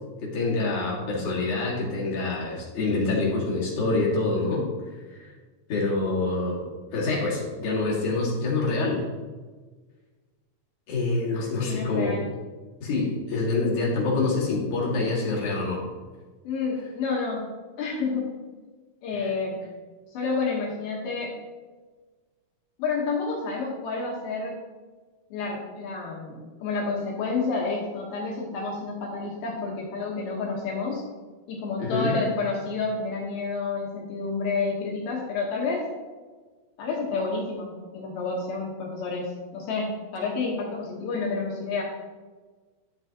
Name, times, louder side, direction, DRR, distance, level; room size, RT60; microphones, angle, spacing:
voice 1, 0.2-4.6 5.1-5.3 5.7-6.7 6.9-9.0 10.9-12.2 12.8-15.9 19.1-19.3 31.8-32.2, left 3 dB, 55° left, -4 dB, 3.1 m, -26 dB
voice 2, 11.6-12.2 16.4-17.5 17.8-18.3 19.0-19.6 20.1-21.3 22.8-24.6 25.3-31.0 31.5-35.8 36.8-41.8, left 4 dB, 75° left, -3 dB, 3.1 m, -29 dB
11.5 x 7.6 x 2.9 m, 1.4 s
omnidirectional pair, 4.6 m